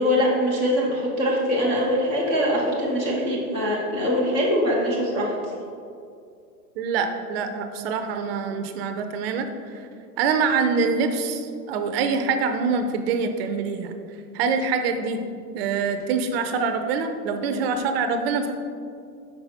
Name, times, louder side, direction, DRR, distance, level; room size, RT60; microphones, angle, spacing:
voice 1, 0.0-5.3, equal, 15° left, -6 dB, 0.3 m, -23 dB
voice 2, 6.8-9.8 10.2-14.0 14.3-15.2 15.5-18.5, right 5 dB, 40° right, 7 dB, 0.5 m, -25 dB
5.8 x 4.8 x 4.1 m, 2.4 s
hypercardioid pair, 130°, 47 cm